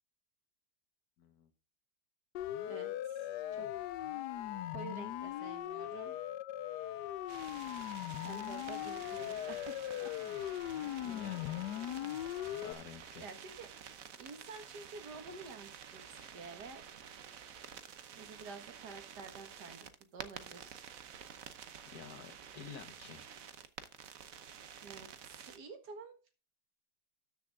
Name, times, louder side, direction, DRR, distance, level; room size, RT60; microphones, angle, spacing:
voice 1, 1.2-1.5 11.0-11.9 12.6-13.3 16.0-16.4 21.9-23.3, left 7 dB, 70° left, 8 dB, 1.8 m, -51 dB
Siren, 2.4-12.7, left 12 dB, 90° left, 1.2 m, -39 dB
voice 2, 2.7-3.9 4.7-6.2 8.2-10.1 13.2-13.7 14.2-16.0 16.3-16.8 18.1-20.8 24.8-26.3, right 4 dB, 80° right, 7 dB, 2.2 m, -50 dB
sound 1, 7.3-25.6, right 8 dB, 60° right, 1.2 m, -51 dB
13.0 x 7.0 x 3.6 m, 0.32 s
omnidirectional pair, 1.7 m